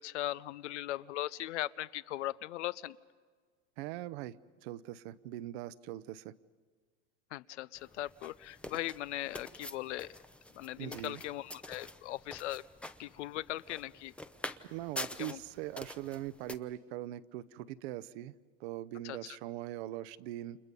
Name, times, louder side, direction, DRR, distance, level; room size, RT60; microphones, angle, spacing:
voice 1, 0.0-3.0 7.3-10.2 10.5-12.6 13.0-14.1 15.2-15.4 19.0-19.2, left 15 dB, 75° left, 18 dB, 0.8 m, -39 dB
voice 2, 3.8-6.3 10.8-11.2 14.6-18.3 18.6-20.6, right 14 dB, 60° right, 16 dB, 0.9 m, -41 dB
sound 1, 7.8-16.5, left 1 dB, 5° left, 0.7 m, -47 dB
29.5 x 27.5 x 5.4 m, 1.5 s
supercardioid pair, 125°, 35 cm